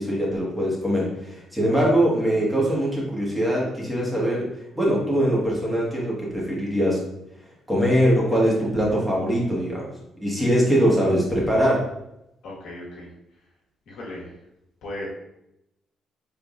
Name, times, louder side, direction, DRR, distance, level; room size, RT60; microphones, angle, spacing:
voice 1, 0.0-4.4 4.7-7.0 7.7-9.9 10.2-11.8, equal, 5° right, -5 dB, 1.4 m, -22 dB
voice 2, 12.4-13.1 13.9-14.3 14.8-15.1, left 1 dB, 75° left, -3 dB, 1.2 m, -36 dB
3.7 x 3.6 x 2.4 m, 0.85 s
cardioid pair, 90°, 0 cm